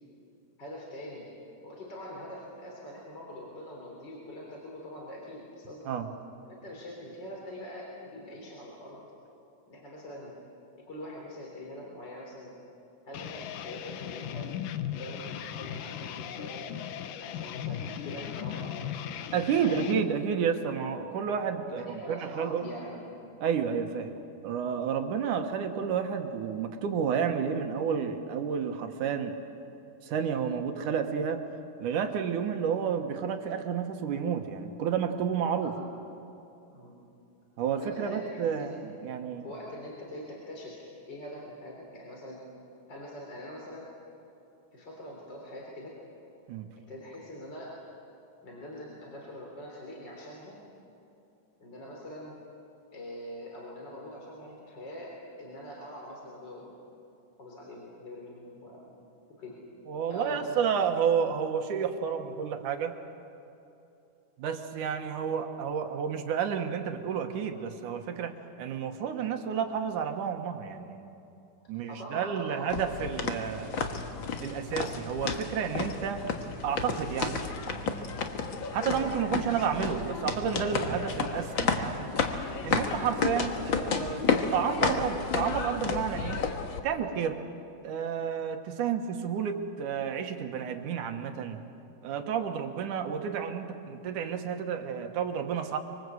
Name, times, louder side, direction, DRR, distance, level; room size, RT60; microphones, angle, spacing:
voice 1, 0.6-1.3 1.6-6.0 6.5-9.0 9.7-10.4 10.7-12.6 13.1-14.5 14.9-16.7 17.2-19.0 19.6-20.2 21.7-23.0 23.7-23.8 35.6-35.7 36.7-36.9 37.7-38.7 39.4-42.4 42.9-43.9 44.7-46.0 46.9-47.8 48.4-50.6 51.6-52.4 52.9-55.1 55.4-56.7 57.4-58.8 59.4-59.6 60.1-60.9 71.9-72.7, left 1 dB, 35° left, -2 dB, 3.9 m, -43 dB
sound 1, 13.1-20.0, left 10 dB, 85° left, 2.6 m, -37 dB
voice 2, 19.3-22.7 23.4-24.1 24.4-29.4 30.0-31.4 31.8-35.8 37.6-39.5 46.5-46.7 59.9-63.0 64.4-71.1 71.7-73.7 74.4-76.3 76.6-78.2 78.7-82.1 82.6-84.3 84.5-86.4 86.8-87.4 87.8-91.6 92.0-95.8, right 7 dB, 75° right, 6 dB, 2.8 m, -31 dB
sound 2, 72.7-86.8, left 5 dB, 50° left, 1.6 m, -32 dB
25.5 x 24.0 x 8.0 m, 2.8 s
omnidirectional pair, 3.7 m